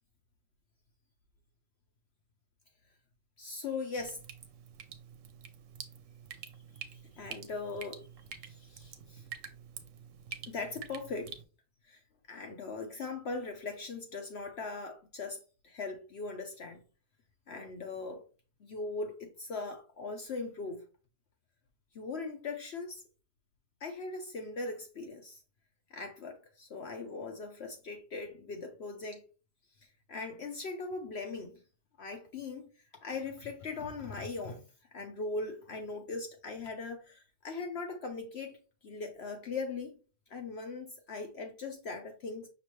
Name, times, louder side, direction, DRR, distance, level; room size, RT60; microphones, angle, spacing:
voice 1, 3.4-4.2 6.9-8.1 8.4-9.2 10.5-11.4 11.9-12.0 12.3-16.8 17.5-18.2 18.6-20.8 21.9-23.0 23.8-25.4 25.9-29.2 30.1-31.6 32.0-32.7 33.0-34.6 34.9-38.6 38.8-40.0 40.3-42.5, left 3 dB, 65° left, 0.6 m, -40 dB
Drip, 4.0-11.4, right 7 dB, 60° right, 0.9 m, -48 dB
5.8 x 2.9 x 3.1 m
omnidirectional pair, 1.8 m